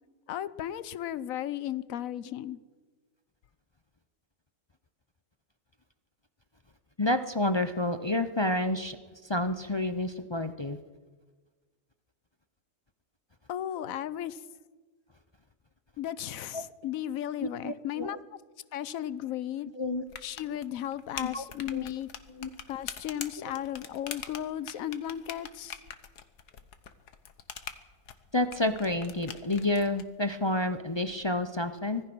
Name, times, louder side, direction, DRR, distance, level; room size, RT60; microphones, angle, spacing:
voice 1, 0.3-2.6 13.5-14.4 16.0-18.2 18.7-19.7 20.2-22.1 22.7-25.8, left 11 dB, 65° left, 17 dB, 1.1 m, -35 dB
voice 2, 7.0-9.0 9.2-10.8 16.5-16.6 17.4-18.1 19.8-20.0 21.2-21.4 21.7-21.8 22.3-22.5 28.3-32.0, left 1 dB, 35° left, 10 dB, 0.4 m, -29 dB
Button xbox, 20.1-30.0, left 7 dB, 80° left, 1.7 m, -44 dB
25.0 x 17.5 x 6.2 m, 1.4 s
omnidirectional pair, 1.7 m